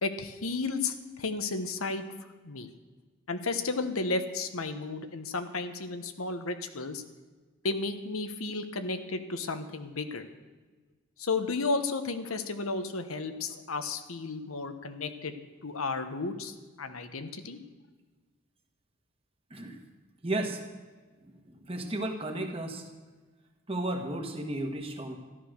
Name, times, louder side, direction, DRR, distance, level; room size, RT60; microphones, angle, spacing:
voice 1, 0.0-2.0 2.4-2.7 3.3-7.0 7.6-10.2 11.2-15.3 15.6-17.6, left 3 dB, 90° left, 8 dB, 1.1 m, -33 dB
voice 2, 20.2-20.6 21.5-22.8 23.7-25.1, right 1 dB, 25° right, 4 dB, 1.5 m, -33 dB
13.5 x 11.5 x 6.6 m, 1.3 s
head